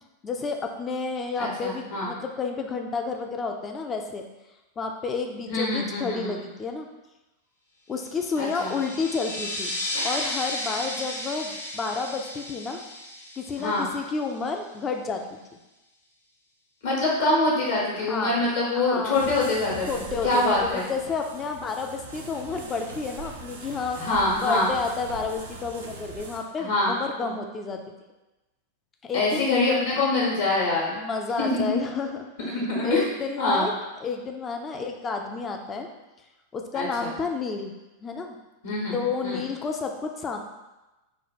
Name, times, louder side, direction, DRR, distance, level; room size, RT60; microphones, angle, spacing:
voice 1, 0.2-4.2 4.8-6.9 7.9-9.8 10.0-12.8 13.4-15.4 18.1-18.5 18.7-19.3 19.9-24.0 24.4-27.8 29.0-29.5 30.9-32.5 32.8-33.7 34.0-35.9 36.5-37.7 38.0-38.4 38.9-40.4, left 4 dB, 20° left, 4 dB, 0.4 m, -30 dB
voice 2, 1.4-2.1 5.5-6.4 8.4-8.7 13.6-13.9 16.8-20.8 24.0-24.7 26.6-27.3 29.1-30.9 31.4-31.6 32.4-33.0 33.4-33.7 36.7-37.1 38.6-39.0 39.2-39.4, left 2 dB, 60° left, -4 dB, 1.0 m, -25 dB
sound 1, 8.1-14.4, left 1 dB, 80° left, 0.7 m, -34 dB
sound 2, 19.1-26.4, right 3 dB, 70° right, 0.5 m, -41 dB
3.1 x 2.2 x 4.2 m, 1.0 s
figure-of-eight pair, 90°, 0 cm